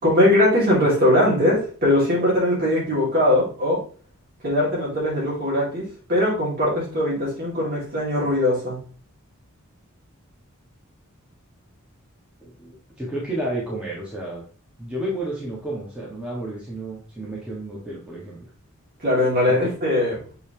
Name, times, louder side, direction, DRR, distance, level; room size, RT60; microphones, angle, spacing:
voice 1, 0.0-3.8 4.4-8.8 19.0-20.1, left 1 dB, 45° right, -6 dB, 3.3 m, -20 dB
voice 2, 12.4-14.4 14.8-18.5 19.5-19.7, right 1 dB, 5° right, -5 dB, 1.6 m, -31 dB
6.9 x 4.1 x 3.4 m, 0.41 s
head